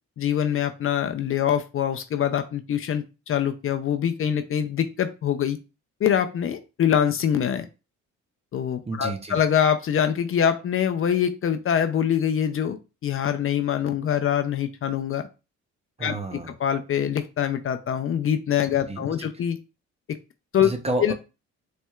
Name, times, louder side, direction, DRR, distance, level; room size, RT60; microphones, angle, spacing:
voice 1, 0.2-5.6 6.0-7.7 8.5-15.3 16.0-16.1 16.6-19.6 20.5-20.7 21.0-21.1, left 9 dB, 45° left, 8 dB, 0.5 m, -24 dB
voice 2, 8.9-9.4 16.0-16.5 18.9-19.3 20.6-21.1, right 2 dB, 20° right, 6 dB, 0.6 m, -30 dB
4.2 x 3.2 x 2.3 m, 0.30 s
cardioid pair, 90°, 30 cm